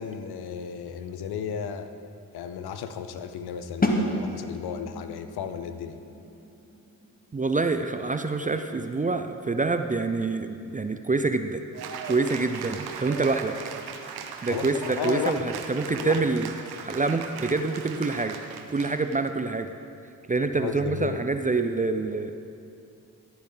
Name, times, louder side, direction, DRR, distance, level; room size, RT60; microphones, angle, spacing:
voice 1, 0.0-1.9 2.3-6.0 14.5-15.4 15.9-16.2 20.5-21.2, left 7 dB, 80° left, 9 dB, 0.6 m, -34 dB
sound 1, 3.8-9.5, left 1 dB, 25° left, 1.3 m, -32 dB
voice 2, 7.3-11.6 12.1-13.6 14.4-16.5 16.8-18.4 18.7-19.7 20.3-22.3, right 3 dB, 20° right, 8 dB, 0.5 m, -26 dB
Cheering / Applause, 11.7-19.3, right 6 dB, 80° right, 0.7 m, -38 dB
15.0 x 7.1 x 3.9 m, 2.6 s
supercardioid pair, 40°, 38 cm